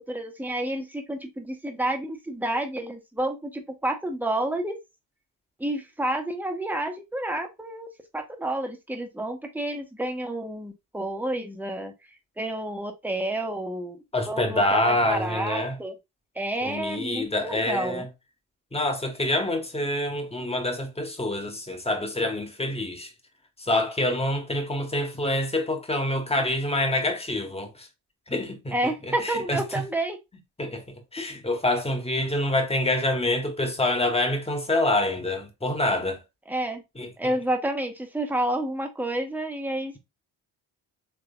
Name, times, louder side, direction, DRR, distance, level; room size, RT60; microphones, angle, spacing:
voice 1, 0.1-4.8 5.6-7.9 8.1-11.9 12.4-14.0 14.3-15.9 16.3-18.1 28.7-30.2 36.5-36.8 37.2-40.0, right 1 dB, 5° right, 1.0 m, -29 dB
voice 2, 14.1-15.8 16.6-18.1 18.7-23.1 23.6-27.9 28.3-29.8 30.6-36.2 37.0-37.3, left 1 dB, 10° left, 1.2 m, -26 dB
3.6 x 3.3 x 2.2 m
hypercardioid pair, 50°, 47 cm